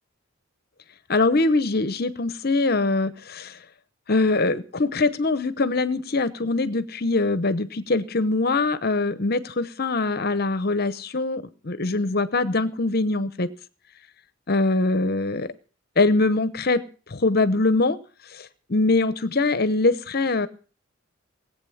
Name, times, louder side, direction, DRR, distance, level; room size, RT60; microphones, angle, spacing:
voice 1, 1.1-3.6 4.1-13.5 14.5-15.5 16.0-18.0 18.3-20.5, left 3 dB, 50° left, 14 dB, 0.9 m, -23 dB
18.5 x 8.4 x 7.2 m, 0.38 s
head